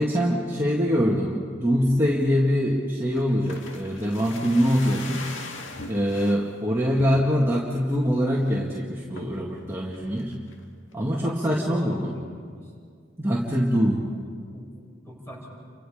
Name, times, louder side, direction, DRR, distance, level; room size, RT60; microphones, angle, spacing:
voice 1, 0.0-5.3 5.9-10.3 10.9-12.1 13.2-14.0, equal, 15° right, -4 dB, 2.1 m, -23 dB
sound 1, 3.2-6.4 7.0-7.6 8.0-8.1 8.3-8.7 9.2-9.5 9.9-10.6 10.9-11.0, left 3 dB, 80° left, 2.1 m, -40 dB
voice 2, 11.2-12.7 14.1-14.2 14.5-14.7 15.0-15.5, equal, 15° left, -4 dB, 8.0 m, -40 dB
30.0 x 25.5 x 5.1 m, 2.1 s
head